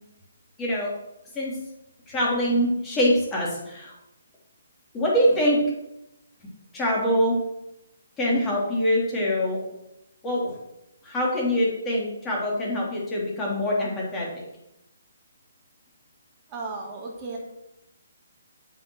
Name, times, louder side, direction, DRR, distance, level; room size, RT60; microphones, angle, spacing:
voice 1, 0.6-0.9 1.3-1.5 2.1-3.9 4.9-5.6 6.7-7.4 8.2-9.6 10.2-10.5 11.0-14.3, equal, 15° left, -4 dB, 3.4 m, -24 dB
voice 2, 16.5-17.4, right 3 dB, 20° right, -1 dB, 2.6 m, -34 dB
8.5 x 6.7 x 6.5 m, 0.86 s
hypercardioid pair, 150°, 0 cm